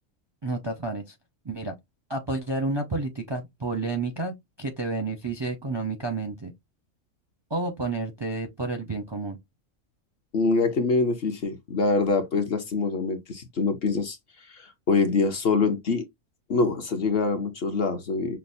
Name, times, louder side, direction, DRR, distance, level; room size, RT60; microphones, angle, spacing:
voice 1, 0.4-1.2 1.4-1.7 2.1-6.5 7.5-9.4, right 3 dB, 30° right, 0.5 m, -30 dB
voice 2, 10.3-14.2 14.5-16.0 16.5-18.4, left 4 dB, 55° left, 0.8 m, -25 dB
5.8 x 2.1 x 2.5 m
omnidirectional pair, 1.4 m